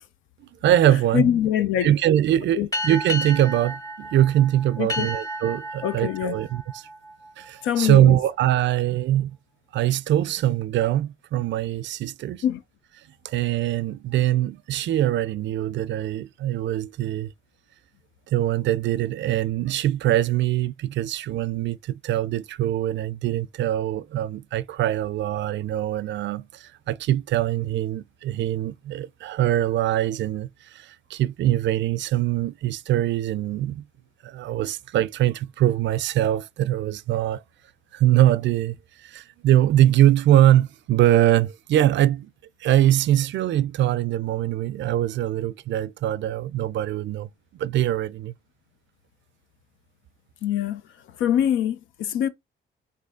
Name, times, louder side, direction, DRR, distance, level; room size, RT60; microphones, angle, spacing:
voice 1, 0.6-1.3 1.8-6.9 7.4-9.4 9.7-12.4 13.2-17.3 18.3-33.8 34.2-37.4 37.9-38.7 39.0-42.3 42.6-47.3 47.6-48.3, right 12 dB, 65° right, 0.4 m, -22 dB
voice 2, 1.1-1.9 2.6-2.7 4.8-5.1 5.8-6.4 7.6-8.2 12.4-12.6 50.4-50.8 51.2-52.3, left 10 dB, 80° left, 0.6 m, -23 dB
sound 1, 2.7-7.8, equal, 15° left, 1.2 m, -33 dB
4.1 x 2.8 x 3.6 m
cardioid pair, 90°, 20 cm